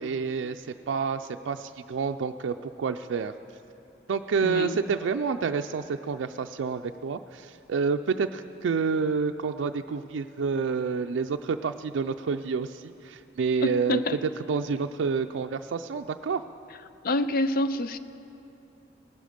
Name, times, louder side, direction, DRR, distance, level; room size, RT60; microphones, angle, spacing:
voice 1, 0.0-3.3 4.1-14.0 14.5-16.4, right 5 dB, 85° right, 6 dB, 0.4 m, -29 dB
voice 2, 4.4-4.8 13.6-14.2 17.0-18.0, left 1 dB, 55° left, 12 dB, 0.5 m, -27 dB
19.0 x 11.5 x 5.1 m, 2.9 s
head